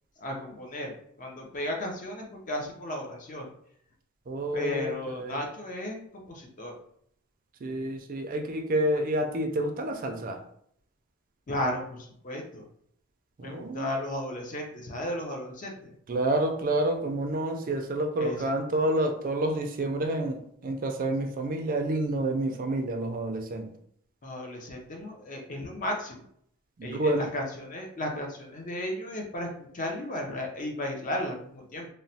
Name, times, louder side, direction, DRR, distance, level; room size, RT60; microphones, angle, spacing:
voice 1, 0.2-3.5 4.5-6.7 11.5-12.7 13.4-15.9 18.2-18.4 24.2-26.2 26.8-29.5 29.7-31.9, left 1 dB, 35° left, 1 dB, 0.5 m, -34 dB
voice 2, 4.3-5.4 7.6-10.4 13.4-13.9 16.1-23.7 26.8-27.3, right 1 dB, 40° right, 4 dB, 0.3 m, -29 dB
2.9 x 2.0 x 2.7 m, 0.68 s
head